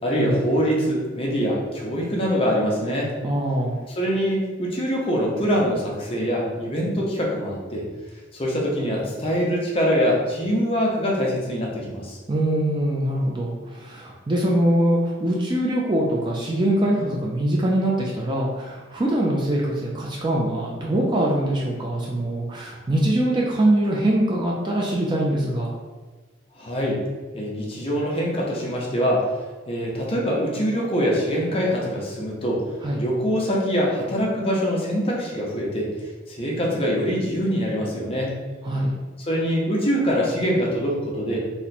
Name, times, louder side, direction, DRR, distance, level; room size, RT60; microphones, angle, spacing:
voice 1, 0.0-3.1 4.0-7.8 8.3-12.2 26.6-27.0 27.3-29.2 29.7-32.6 33.0-35.9 36.3-38.3 39.2-41.4, equal, 30° left, -3 dB, 0.6 m, -24 dB
voice 2, 3.2-3.8 12.3-25.7 32.8-33.0 38.6-38.9, right 1 dB, 20° right, -3 dB, 0.3 m, -23 dB
2.8 x 2.1 x 4.0 m, 1.3 s
head